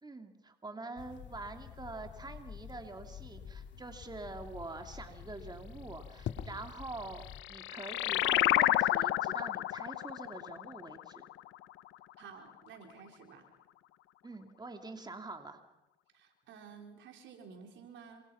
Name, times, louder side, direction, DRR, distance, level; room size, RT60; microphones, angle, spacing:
voice 1, 0.0-11.2 14.2-15.6, right 3 dB, 20° right, 6 dB, 2.8 m, -45 dB
sound 1, 1.0-7.4, left 8 dB, 75° left, 1.9 m, -47 dB
sound 2, 7.1-12.1, left 15 dB, 90° left, 0.8 m, -31 dB
voice 2, 12.2-13.5 16.1-18.2, right 6 dB, 80° right, 4 dB, 4.5 m, -52 dB
28.0 x 25.0 x 5.9 m, 0.89 s
cardioid pair, 80°, 19 cm